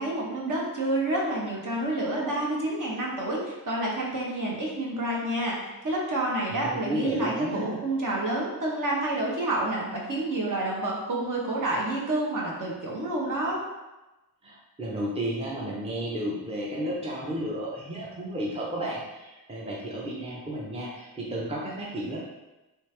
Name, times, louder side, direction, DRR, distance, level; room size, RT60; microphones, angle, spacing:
voice 1, 0.0-5.6 5.8-13.6, right 1 dB, 55° right, -3 dB, 1.0 m, -29 dB
voice 2, 6.5-7.8 14.4-22.2, right 1 dB, 15° right, -4 dB, 0.6 m, -33 dB
3.4 x 3.2 x 3.2 m, 1.0 s
wide cardioid pair, 145°, 37 cm